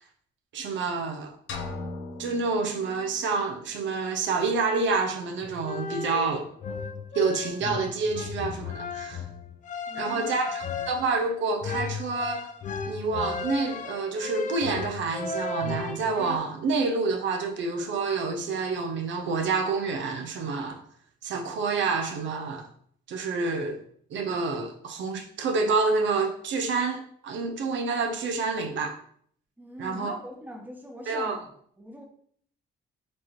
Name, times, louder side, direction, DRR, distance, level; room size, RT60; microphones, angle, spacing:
voice 1, 0.5-1.3 2.2-6.5 7.1-9.2 10.0-10.6 10.9-12.5 12.9-20.8 21.2-22.7 23.1-23.8 24.1-28.9 29.8-30.2 31.1-31.4, right 4 dB, 70° right, 0.6 m, -28 dB
sound 1, 1.5-3.4, left 3 dB, 75° left, 0.7 m, -38 dB
sound 2, 5.4-16.4, left 5 dB, 40° left, 0.4 m, -35 dB
voice 2, 9.9-10.3 29.6-31.5 31.8-32.0, equal, 10° right, 1.0 m, -42 dB
4.3 x 2.9 x 3.0 m
cardioid pair, 90°, 20 cm